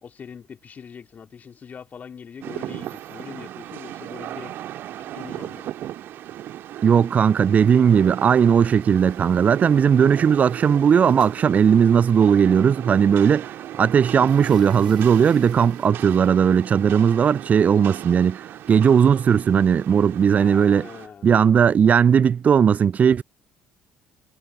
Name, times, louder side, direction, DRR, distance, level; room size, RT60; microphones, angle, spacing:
voice 1, 0.0-4.5 5.1-5.7 20.3-21.2, left 7 dB, 35° left, 2.3 m, -41 dB
Rain, 2.4-21.1, right 12 dB, 55° right, 2.1 m, -36 dB
voice 2, 6.8-20.9 21.2-23.2, right 7 dB, 35° right, 0.3 m, -17 dB
sound 1, 8.9-9.9 10.2-12.1 13.1-13.2 13.6-16.3, right 9 dB, 80° right, 4.7 m, -52 dB
figure-of-eight pair, 50°, 5 cm